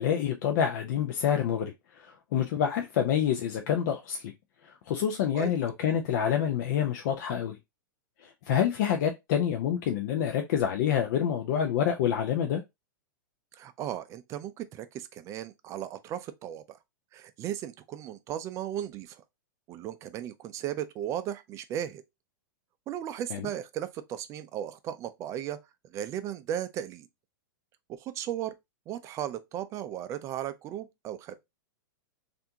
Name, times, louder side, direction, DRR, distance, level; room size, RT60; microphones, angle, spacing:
voice 1, 0.0-4.3 4.6-7.6 8.2-12.6 23.3-23.5, left 9 dB, 55° left, 0.5 m, -27 dB
voice 2, 13.5-16.8 17.1-19.2 19.7-22.0 22.9-25.6 25.9-27.1 27.9-28.5 28.9-31.4, right 11 dB, 25° right, 0.4 m, -36 dB
3.4 x 2.5 x 2.8 m
hypercardioid pair, 140°, 11 cm